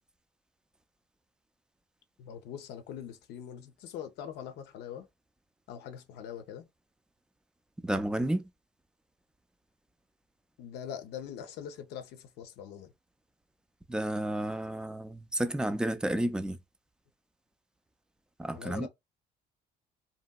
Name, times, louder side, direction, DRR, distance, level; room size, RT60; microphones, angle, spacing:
voice 1, 2.2-5.1 5.7-6.7 10.6-12.9 18.5-18.9, left 9 dB, 75° left, 0.6 m, -42 dB
voice 2, 7.8-8.4 13.9-16.6 18.4-18.9, right 1 dB, 5° right, 0.3 m, -31 dB
2.9 x 2.7 x 2.2 m
cardioid pair, 110°, 17 cm